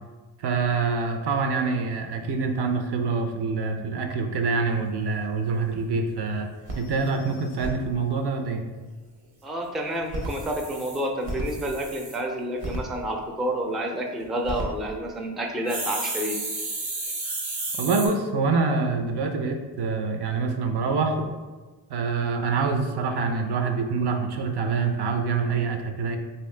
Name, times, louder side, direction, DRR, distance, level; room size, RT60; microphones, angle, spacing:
voice 1, 0.4-6.5 6.8-8.6 17.8-21.3 21.9-26.2, right 4 dB, 55° right, 5 dB, 0.5 m, -26 dB
sound 1, 5.5-5.6 6.0-6.1 6.3-6.4 6.7-7.7 10.0-12.2 12.6-12.8 14.2-14.6 15.7-18.1, right 2 dB, 80° right, 1.0 m, -32 dB
voice 2, 9.4-16.4, right 1 dB, ahead, 2 dB, 0.4 m, -29 dB
3.1 x 2.8 x 3.2 m, 1.3 s
supercardioid pair, 45°, 47 cm